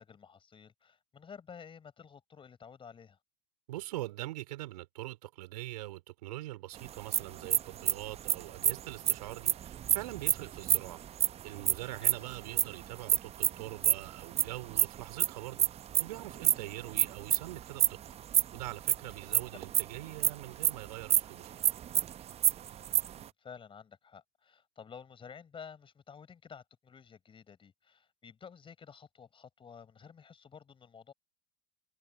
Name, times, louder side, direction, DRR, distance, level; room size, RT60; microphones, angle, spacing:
voice 1, 0.0-3.2 12.0-12.3 16.9-17.0 22.7-31.1, left 6 dB, 25° left, 5.3 m, -52 dB
voice 2, 3.7-11.0 11.4-18.0 18.5-21.6, right 16 dB, 70° right, 3.8 m, -43 dB
sound 1, 6.9-12.6 13.1-20.3 20.6-20.7 21.0-21.2 21.5-23.2, right 10 dB, 30° right, 0.9 m, -27 dB
hypercardioid pair, 95°, 21 cm